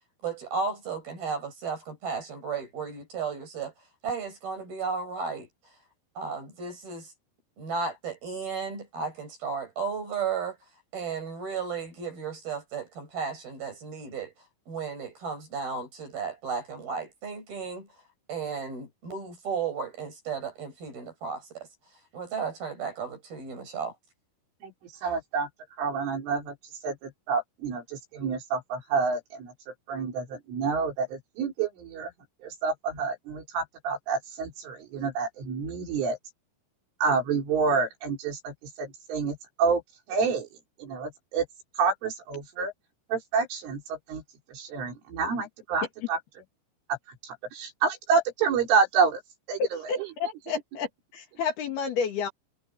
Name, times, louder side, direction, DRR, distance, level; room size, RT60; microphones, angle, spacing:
voice 1, 0.2-3.7 4.0-5.5 6.2-7.1 7.6-10.6 10.9-14.3 14.7-17.9 18.3-21.7 22.1-23.9, right 5 dB, 50° right, 9.9 m, -34 dB
voice 2, 25.0-25.5 25.8-26.6 26.8-29.5 29.9-32.1 32.4-36.2 37.0-39.8 40.1-40.5 40.8-41.5 41.8-42.7 43.1-44.2 44.5-46.2 47.2-49.2 49.5-49.8, right 5 dB, 85° right, 7.2 m, -28 dB
voice 3, 49.9-52.3, left 6 dB, 60° left, 4.0 m, -30 dB
omnidirectional pair, 5.5 m